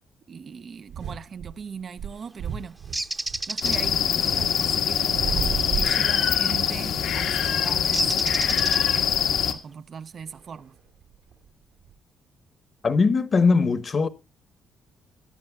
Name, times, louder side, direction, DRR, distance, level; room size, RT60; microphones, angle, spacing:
voice 1, 0.3-2.8 3.5-8.1 8.7-9.0 9.5-10.7, right 6 dB, 50° right, 0.5 m, -39 dB
sound 1, 0.9-1.5 2.0-4.5 4.8-6.3 6.6-7.9 8.2-8.5 10.2-11.5 11.8-11.9, right 8 dB, 85° right, 3.1 m, -33 dB
Bird, 2.9-3.8 6.4-6.6 7.9-9.1, right 2 dB, 15° right, 0.8 m, -29 dB
sound 2, 3.6-9.5, left 8 dB, 80° left, 1.6 m, -24 dB
voice 2, 12.8-14.1, left 4 dB, 40° left, 1.1 m, -20 dB
22.5 x 10.5 x 2.3 m
cardioid pair, 90°, 0 cm